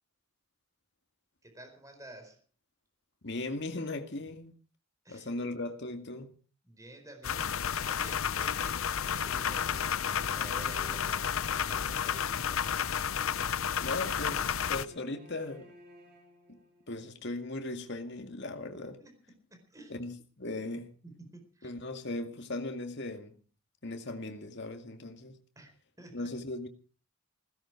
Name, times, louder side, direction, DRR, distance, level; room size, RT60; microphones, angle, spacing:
voice 1, 1.4-2.4 5.0-5.3 6.6-7.6 7.8-8.9 9.1-11.4 11.7-12.6 19.0-19.1 19.5-20.0 21.0-21.7 25.6-25.7 26.0-26.3, right 1 dB, 15° right, 4.5 m, -51 dB
voice 2, 3.2-4.5 5.1-6.3 13.8-15.7 16.5-16.6 16.9-19.0 19.9-20.9 21.6-23.4 23.8-25.4 26.1-26.7, left 2 dB, 55° left, 2.2 m, -38 dB
sound 1, 7.2-14.9, left 8 dB, 90° left, 0.7 m, -31 dB
sound 2, 9.3-17.0, right 1 dB, 50° right, 7.4 m, -56 dB
17.0 x 16.0 x 4.8 m
head